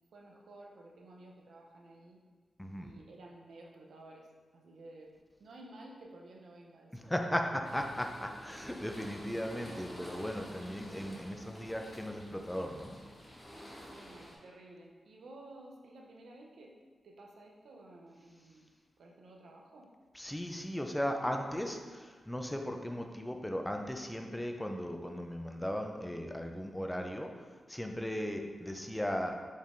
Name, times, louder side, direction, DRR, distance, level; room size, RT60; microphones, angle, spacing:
voice 1, 0.1-2.2 2.8-4.3 4.5-5.1 5.4-7.3 10.6-10.8 13.8-16.8 17.0-18.7 19.0-19.9, right 2 dB, 80° right, 0 dB, 0.6 m, -53 dB
voice 2, 2.6-2.9 6.9-13.0 20.1-27.3 27.7-29.4, equal, 10° left, 3 dB, 0.5 m, -37 dB
sound 1, 7.6-14.4, equal, 25° left, 1.2 m, -50 dB
5.3 x 3.4 x 2.6 m, 1.5 s
cardioid pair, 65°, 0 cm